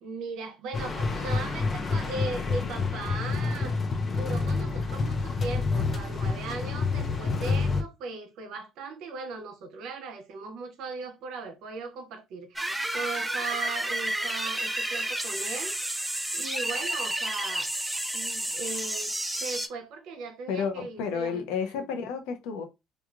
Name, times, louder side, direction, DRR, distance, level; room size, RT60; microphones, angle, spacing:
voice 1, 0.0-17.7 18.1-19.1 19.4-21.9, right 4 dB, 75° right, 0.7 m, -38 dB
sound 1, 0.7-7.8, left 4 dB, 35° left, 0.6 m, -28 dB
sound 2, 12.6-19.7, right 1 dB, 5° right, 0.4 m, -31 dB
voice 2, 20.5-22.6, left 6 dB, 90° left, 0.5 m, -31 dB
3.0 x 2.3 x 2.4 m
cardioid pair, 95°, 0 cm